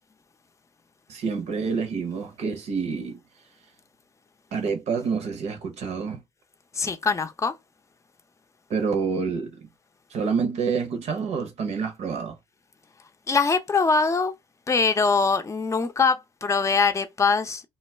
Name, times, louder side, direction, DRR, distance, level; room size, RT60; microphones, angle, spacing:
voice 1, 1.1-3.2 4.5-6.2 8.7-9.7 10.1-12.4, right 5 dB, 65° right, 0.8 m, -28 dB
voice 2, 6.7-7.5 13.3-14.3 14.7-17.6, left 4 dB, 25° left, 0.6 m, -22 dB
2.3 x 2.2 x 3.2 m
hypercardioid pair, 55°, 12 cm